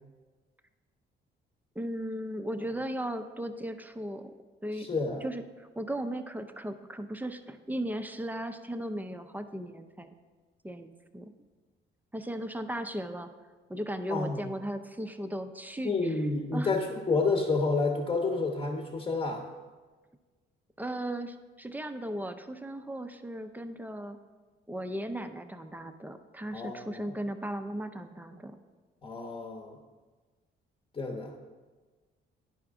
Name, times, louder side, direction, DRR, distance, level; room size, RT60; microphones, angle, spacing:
voice 1, 1.8-4.3 4.6-4.9 5.2-10.1 10.6-11.3 12.1-13.3 13.7-16.1 16.5-16.7 20.8-24.2 24.7-28.6, right 1 dB, 10° right, 8 dB, 0.5 m, -36 dB
voice 2, 4.8-5.2 14.1-14.4 15.8-19.5 26.5-27.0 29.0-29.8 30.9-31.3, left 3 dB, 25° left, 0 dB, 0.9 m, -29 dB
10.5 x 4.7 x 3.6 m, 1.3 s
cardioid pair, 90°, 20 cm